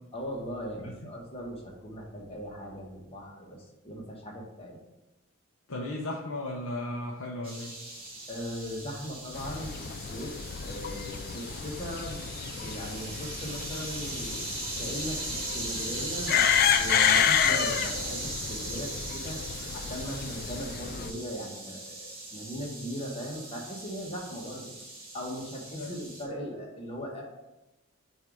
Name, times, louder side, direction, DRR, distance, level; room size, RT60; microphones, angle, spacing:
voice 1, 0.1-4.8 8.3-10.4 10.6-12.3 12.5-14.5 14.8-24.7 25.1-27.2, equal, 30° left, -1 dB, 1.2 m, -39 dB
voice 2, 5.7-7.8 25.8-25.9, left 1 dB, 80° left, -3 dB, 0.8 m, -35 dB
sound 1, 7.4-26.2, right 2 dB, 25° right, 1.7 m, -39 dB
sound 2, 9.4-21.1, left 8 dB, 45° left, 0.3 m, -30 dB
7.4 x 2.7 x 4.9 m, 0.99 s
head